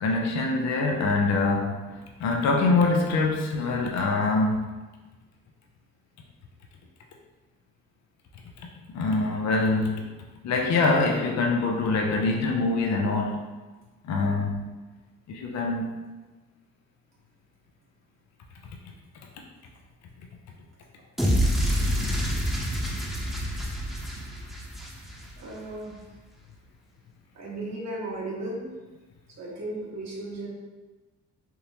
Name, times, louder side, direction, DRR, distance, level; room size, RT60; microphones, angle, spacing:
voice 1, 0.0-4.7 8.9-10.0 10.4-13.5 14.0-14.7 15.3-15.9, left 3 dB, 65° left, 1 dB, 0.6 m, -24 dB
sound 1, 21.2-25.4, equal, ahead, 0.9 m, -27 dB
voice 2, 25.4-26.0 27.3-28.7 29.4-30.5, right 2 dB, 60° right, -5 dB, 1.4 m, -35 dB
3.5 x 2.9 x 2.8 m, 1.2 s
cardioid pair, 90°, 30 cm